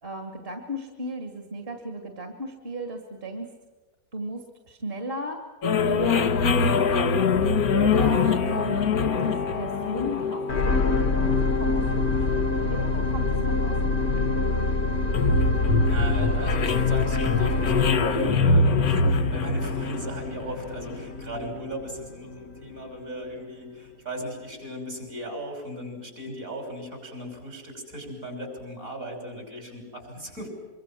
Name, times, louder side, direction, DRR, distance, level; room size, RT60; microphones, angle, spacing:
voice 1, 0.0-3.5 4.1-5.4 5.8-6.9 7.7-14.1, right 1 dB, 40° right, 5 dB, 2.4 m, -35 dB
sound 1, 5.6-21.0, left 4 dB, 80° left, 1.6 m, -24 dB
sound 2, 10.5-22.9 23.5-23.6, left 3 dB, 50° left, 1.4 m, -27 dB
voice 2, 15.9-30.5, equal, 65° right, 3 dB, 7.0 m, -37 dB
25.0 x 24.5 x 7.6 m, 1.2 s
omnidirectional pair, 1.5 m